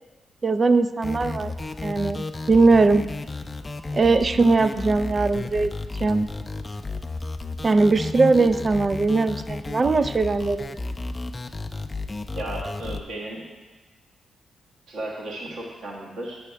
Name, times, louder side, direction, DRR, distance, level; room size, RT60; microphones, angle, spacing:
voice 1, 0.4-1.5 1.8-3.0 3.9-5.7 6.0-6.3 7.6-10.8, right 3 dB, 45° right, 12 dB, 0.4 m, -20 dB
sound 1, 1.0-13.0, left 3 dB, 35° left, 0.5 m, -33 dB
voice 2, 12.3-13.5 14.9-16.4, right 1 dB, 80° right, -3 dB, 1.4 m, -34 dB
8.9 x 6.3 x 3.4 m, 1.2 s
supercardioid pair, 50°, 0 cm